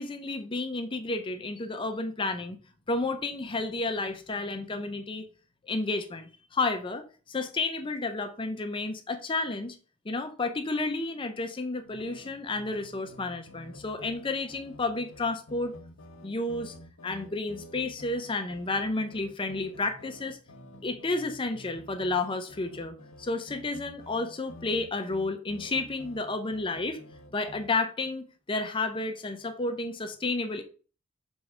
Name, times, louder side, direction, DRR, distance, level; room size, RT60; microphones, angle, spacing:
voice 1, 0.0-2.6 2.9-5.3 5.7-9.8 10.1-15.7 16.2-16.7 17.0-20.4 20.8-27.0 27.3-30.6, left 3 dB, 25° left, 0.5 m, -31 dB
sound 1, 11.8-27.7, left 1 dB, 85° left, 1.0 m, -50 dB
6.3 x 3.1 x 4.8 m
head